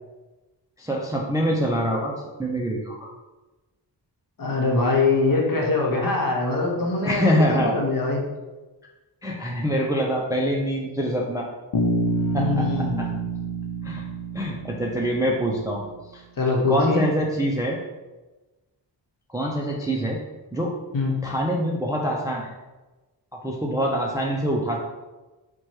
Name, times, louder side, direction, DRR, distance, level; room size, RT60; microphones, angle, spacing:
voice 1, 0.8-3.1 7.0-7.8 9.2-11.5 12.3-13.1 13.8-14.0 14.3-15.8 16.1-16.2 16.7-17.8 19.3-20.2 20.5-20.7 21.2-22.5 23.3-24.8, equal, 10° right, -1 dB, 0.3 m, -25 dB
voice 2, 4.4-8.2 12.3-13.2 16.4-17.1 20.9-21.1, left 3 dB, 50° left, -1 dB, 0.9 m, -23 dB
Bass guitar, 11.7-15.8, right 2 dB, 75° left, 0.7 m, -27 dB
4.6 x 2.3 x 4.4 m, 1.1 s
wide cardioid pair, 175°, 43 cm